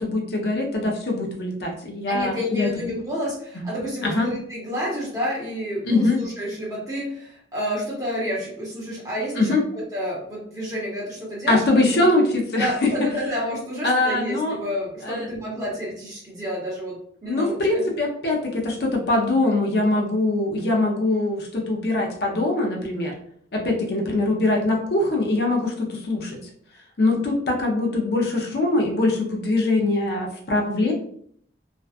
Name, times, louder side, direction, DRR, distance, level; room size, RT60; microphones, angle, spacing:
voice 1, 0.0-2.7 3.6-3.7 4.0-4.3 5.9-6.2 9.4-9.6 11.5-12.9 13.8-14.6 15.0-15.3 17.3-23.2 23.5-26.4 27.0-30.9, left 2 dB, 60° left, 0 dB, 0.5 m, -22 dB
voice 2, 2.1-11.6 11.9-12.0 12.6-17.9, equal, 20° right, -6 dB, 0.9 m, -30 dB
2.5 x 2.2 x 2.4 m, 0.63 s
head